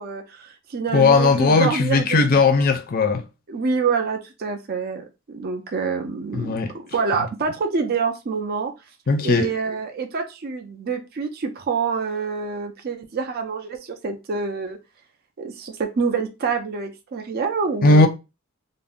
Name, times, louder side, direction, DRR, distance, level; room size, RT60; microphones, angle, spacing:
voice 1, 0.0-2.5 3.5-8.7 9.2-14.8 15.4-18.1, right 5 dB, 45° right, 0.4 m, -26 dB
voice 2, 0.9-3.2 6.3-6.7 9.1-9.5 17.8-18.1, left 3 dB, 45° left, 0.4 m, -17 dB
2.5 x 2.0 x 3.5 m
head